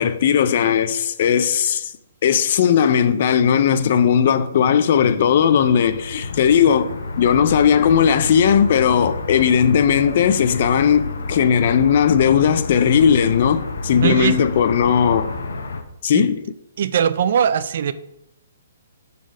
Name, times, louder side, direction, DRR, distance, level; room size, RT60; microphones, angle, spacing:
voice 1, 0.0-1.9 2.2-15.3 16.0-16.4, left 8 dB, 40° left, 0.4 m, -17 dB
sound 1, 4.9-15.8, left 3 dB, 80° left, 0.8 m, -30 dB
voice 2, 14.0-14.4 16.1-16.2 16.8-17.9, right 8 dB, 45° right, 0.3 m, -20 dB
6.3 x 4.0 x 5.3 m
hypercardioid pair, 175°, 0 cm